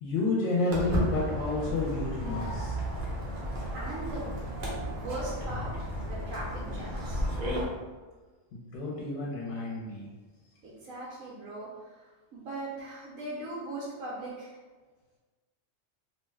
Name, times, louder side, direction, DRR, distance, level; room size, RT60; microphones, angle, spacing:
voice 1, 0.0-2.8 8.5-10.1, left 2 dB, 70° left, -4 dB, 1.0 m, -30 dB
Walk footsteps, 0.7-7.6, equal, 45° right, 0.7 m, -33 dB
voice 2, 3.7-4.6 4.9-5.7 6.0-7.2 10.6-14.6, right 2 dB, 90° right, -6 dB, 1.1 m, -39 dB
2.8 x 2.3 x 3.1 m, 1.3 s
omnidirectional pair, 1.4 m